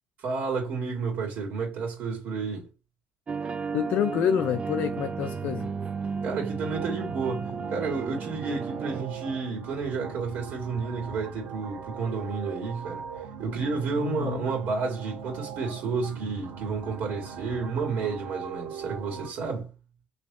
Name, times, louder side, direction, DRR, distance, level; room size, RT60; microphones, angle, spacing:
voice 1, 0.2-2.7 6.2-13.1 13.4-19.7, right 4 dB, 70° right, 2.2 m, -31 dB
sound 1, 3.3-9.0, right 5 dB, 35° right, 0.4 m, -33 dB
voice 2, 3.7-5.7 14.0-14.5, left 9 dB, 65° left, 0.5 m, -27 dB
sound 2, 6.7-19.3, right 7 dB, 85° right, 1.6 m, -41 dB
3.4 x 3.1 x 4.1 m
cardioid pair, 90°, 3 cm